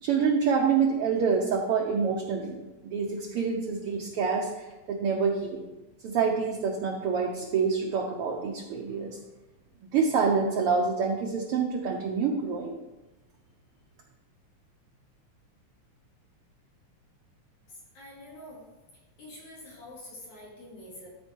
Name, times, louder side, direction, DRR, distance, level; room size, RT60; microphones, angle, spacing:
voice 1, 0.0-2.6 2.9-5.6 6.0-9.2 9.9-12.8, right 5 dB, 65° right, 0 dB, 1.5 m, -27 dB
voice 2, 17.9-18.6 19.2-21.1, left 1 dB, 75° left, -7 dB, 4.8 m, -46 dB
13.0 x 4.6 x 4.5 m, 1.0 s
omnidirectional pair, 3.4 m